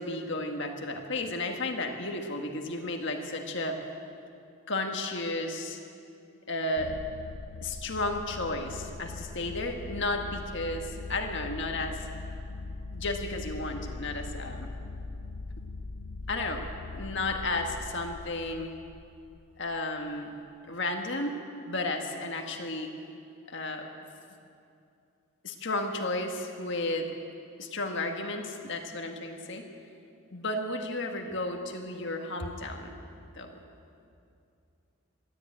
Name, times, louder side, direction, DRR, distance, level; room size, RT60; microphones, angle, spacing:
voice 1, 0.0-3.7 4.7-5.8 6.5-6.9 7.6-12.0 12.9-14.7 16.3-16.7 16.9-18.7 19.6-20.3 20.7-21.3 21.7-22.9 23.5-23.9 25.4-27.1 27.6-29.7 30.3-32.9 33.3-33.5, left 2 dB, 55° left, 3 dB, 1.7 m, -33 dB
sound 1, 6.8-19.6, left 3 dB, 90° left, 0.7 m, -41 dB
23.0 x 14.0 x 8.8 m, 2.6 s
head